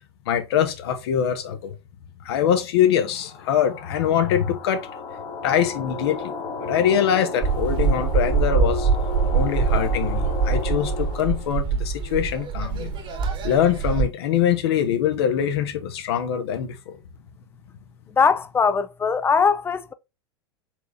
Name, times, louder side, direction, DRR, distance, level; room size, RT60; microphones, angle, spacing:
voice 1, 0.3-1.7 2.2-4.9 5.4-6.3 6.6-8.9 9.3-12.9 13.4-16.9, left 9 dB, 70° left, 1.0 m, -23 dB
sound 1, 3.1-11.5, left 4 dB, 45° left, 1.3 m, -34 dB
sound 2, 7.4-14.0, right 5 dB, 35° right, 1.2 m, -23 dB
voice 2, 18.2-19.9, left 5 dB, 15° left, 0.4 m, -20 dB
4.5 x 3.5 x 2.6 m
hypercardioid pair, 95°, 14 cm